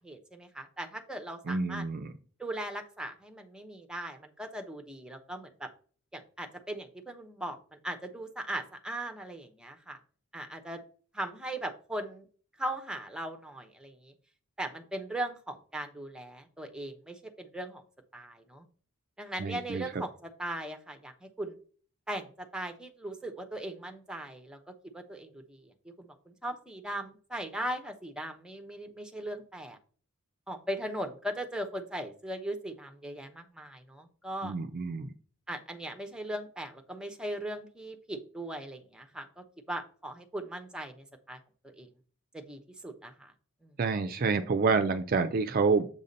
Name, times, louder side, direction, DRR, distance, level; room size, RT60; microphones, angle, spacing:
voice 1, 0.0-1.8 2.4-5.7 6.1-10.0 10.3-10.8 11.1-12.3 12.6-14.1 14.6-17.8 18.1-18.6 19.2-21.6 22.1-24.6 24.9-29.8 30.5-34.5 35.5-41.9 42.3-43.3 43.6-43.7, right 1 dB, 5° right, 6 dB, 0.7 m, -39 dB
voice 2, 1.5-2.1 19.4-19.8 34.4-35.1 43.8-45.9, right 4 dB, 45° right, 8 dB, 0.4 m, -28 dB
7.3 x 2.7 x 5.1 m, 0.42 s
head